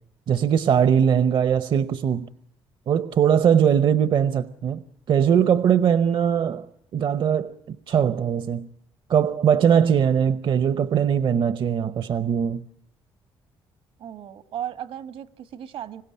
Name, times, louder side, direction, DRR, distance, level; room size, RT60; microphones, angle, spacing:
voice 1, 0.3-2.3 2.9-6.7 6.9-8.7 9.1-12.6, right 8 dB, 60° right, 0.8 m, -21 dB
voice 2, 14.0-16.0, right 10 dB, 75° right, 1.5 m, -35 dB
26.0 x 16.5 x 8.5 m
cardioid pair, 85°, 10 cm